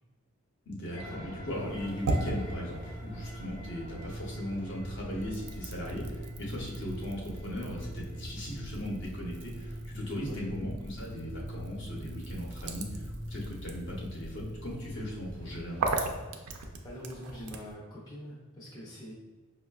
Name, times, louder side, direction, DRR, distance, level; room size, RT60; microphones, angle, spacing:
voice 1, 0.7-16.1, equal, 55° left, -2 dB, 0.7 m, -38 dB
sound 1, 0.9-16.2, equal, 85° left, 0.7 m, -43 dB
sound 2, 1.5-4.1 4.5-17.7, right 3 dB, 85° right, 0.4 m, -40 dB
voice 2, 16.8-19.1, equal, 20° left, -6 dB, 0.4 m, -44 dB
5.2 x 2.1 x 2.3 m, 1.2 s
head